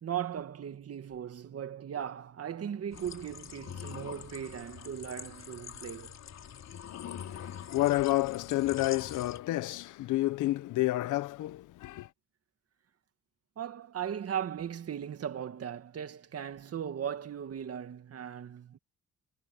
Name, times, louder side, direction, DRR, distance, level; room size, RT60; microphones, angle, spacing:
voice 1, 0.0-6.2 13.6-18.8, right 9 dB, 50° right, 2.0 m, -38 dB
sound 1, 2.9-9.4, left 9 dB, 60° left, 3.9 m, -45 dB
voice 2, 6.9-12.1, left 17 dB, 85° left, 1.0 m, -30 dB
cardioid pair, 90°, 30 cm